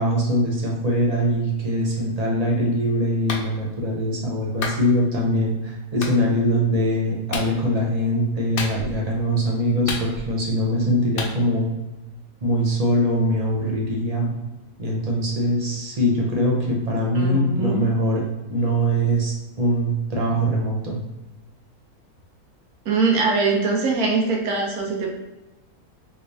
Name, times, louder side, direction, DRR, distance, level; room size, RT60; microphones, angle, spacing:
voice 1, 0.0-11.7 12.4-14.3 14.8-18.2 18.5-21.0, equal, 35° right, -2 dB, 0.6 m, -22 dB
Clapping, 3.3-3.5 4.6-4.8 6.0-6.2 7.3-7.5 8.6-9.0 9.9-10.4 11.2-11.3, left 4 dB, 75° left, 0.5 m, -30 dB
voice 2, 17.1-17.9 22.9-25.1, right 4 dB, 80° right, 0 dB, 1.3 m, -22 dB
3.4 x 3.2 x 2.7 m, 1.1 s
omnidirectional pair, 1.6 m